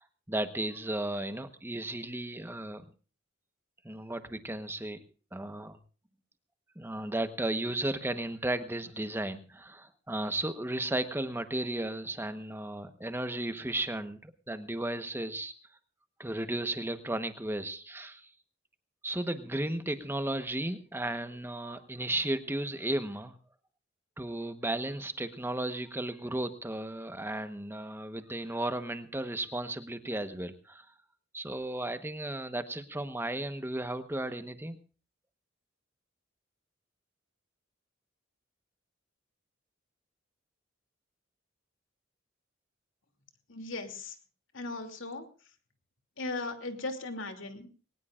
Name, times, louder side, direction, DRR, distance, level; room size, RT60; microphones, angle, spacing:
voice 1, 0.0-2.8 3.8-5.0 5.3-5.8 6.8-15.5 16.2-18.3 19.0-23.4 24.2-30.8 31.3-34.8, right 1 dB, 10° right, 9 dB, 1.1 m, -34 dB
voice 2, 43.5-44.2 44.5-45.5 46.2-47.7, left 2 dB, 75° left, 6 dB, 2.8 m, -38 dB
21.5 x 19.0 x 2.5 m, 0.37 s
head